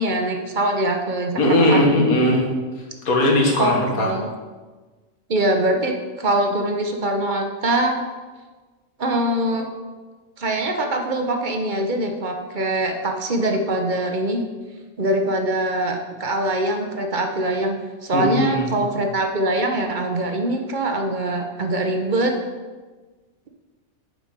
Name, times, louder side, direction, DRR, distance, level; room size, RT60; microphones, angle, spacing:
voice 1, 0.0-1.4 1.7-1.8 3.6-4.3 5.3-8.0 9.0-9.7 10.4-14.4 15.0-22.3, right 1 dB, 40° right, 4 dB, 0.9 m, -23 dB
voice 2, 1.4-2.4 2.8-4.1 18.1-18.8, left 1 dB, 80° left, -1 dB, 2.0 m, -19 dB
8.5 x 5.2 x 5.2 m, 1.3 s
omnidirectional pair, 1.5 m